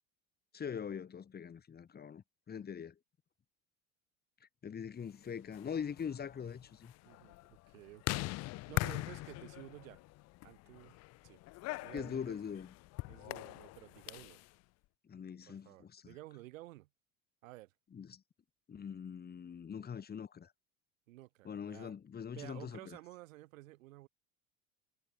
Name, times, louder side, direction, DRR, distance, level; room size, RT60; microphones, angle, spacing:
voice 1, 0.5-2.9 4.6-6.9 11.9-12.7 15.0-16.1 17.9-18.2 18.7-20.5 21.4-23.0, left 7 dB, 25° left, 1.3 m, -42 dB
sound 1, 5.4-14.5, left 20 dB, 40° left, 0.5 m, -42 dB
voice 2, 7.0-10.0 10.4-11.4 11.8-12.4 13.1-14.4 15.5-16.9 17.4-17.7 21.1-21.9 22.3-24.1, right 18 dB, 70° right, 4.9 m, -53 dB
hypercardioid pair, 75°, 41 cm